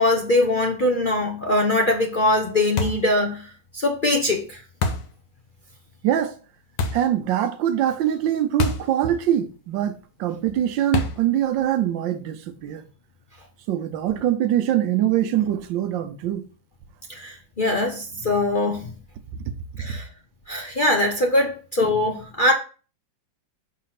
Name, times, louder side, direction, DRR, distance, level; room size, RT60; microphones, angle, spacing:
voice 1, 0.0-3.5 3.7-4.6 17.1-18.9 19.8-20.1 20.5-22.5, left 2 dB, 45° left, 0.7 m, -22 dB
sound 1, 2.8-3.1 4.8-5.2 6.8-7.1 8.6-8.9 9.2-9.3 10.9-11.3, left 4 dB, 75° left, 1.6 m, -26 dB
voice 2, 6.9-12.8 13.7-16.4, right 11 dB, 85° right, 1.4 m, -23 dB
5.7 x 4.1 x 5.8 m
omnidirectional pair, 2.0 m